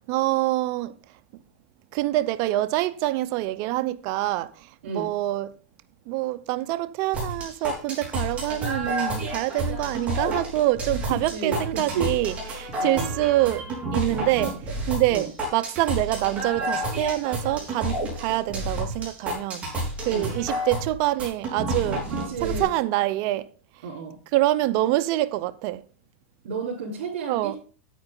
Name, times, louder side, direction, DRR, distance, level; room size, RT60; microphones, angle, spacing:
voice 1, 0.1-0.9 1.9-4.5 4.9-5.5 6.1-13.6 13.9-14.5 14.9-19.7 20.1-22.0 22.4-23.5 24.3-25.8 27.3-27.6, right 16 dB, 45° right, 0.6 m, -25 dB
sound 1, 7.1-22.6, right 1 dB, 20° right, 4.3 m, -30 dB
voice 2, 11.1-12.1 12.8-13.1 15.1-15.3 20.1-20.3 22.1-22.7 23.8-24.2 26.4-27.6, right 5 dB, 75° right, 3.9 m, -31 dB
9.3 x 8.8 x 3.8 m
supercardioid pair, 140°, 7 cm